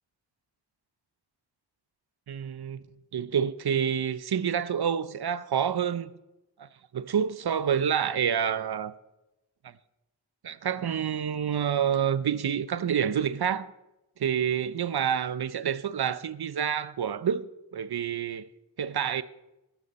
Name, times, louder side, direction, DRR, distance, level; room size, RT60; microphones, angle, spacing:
voice 1, 2.3-2.8 3.1-6.1 6.6-6.7 6.9-8.9 10.4-13.7 14.2-18.5 18.8-19.2, right 8 dB, 60° right, 0.7 m, -28 dB
13.0 x 12.0 x 4.2 m
wide cardioid pair, 80°, 43 cm